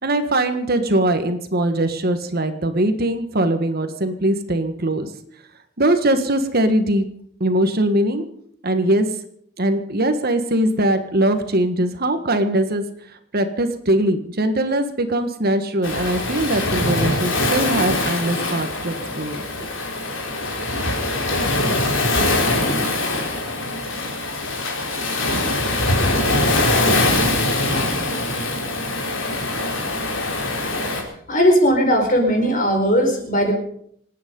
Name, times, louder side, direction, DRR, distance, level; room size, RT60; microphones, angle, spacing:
voice 1, 0.0-5.1 5.8-7.0 7.4-8.2 8.6-9.1 9.6-12.8 13.3-19.7, right 1 dB, 50° right, 8 dB, 1.6 m, -21 dB
Waves surf, 15.8-31.0, left 2 dB, 70° left, 4.2 m, -22 dB
voice 2, 31.3-33.5, equal, 45° left, 3 dB, 4.7 m, -17 dB
27.0 x 9.4 x 5.4 m, 0.66 s
head